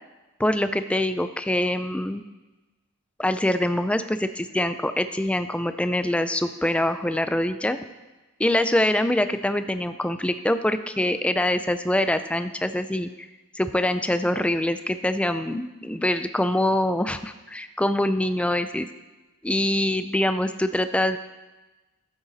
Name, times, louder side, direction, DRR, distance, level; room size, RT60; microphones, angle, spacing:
voice 1, 0.4-2.2 3.2-7.8 8.4-13.1 13.5-18.9 19.4-21.2, left 1 dB, 5° left, 10 dB, 0.3 m, -24 dB
12.0 x 8.8 x 4.1 m, 1.1 s
head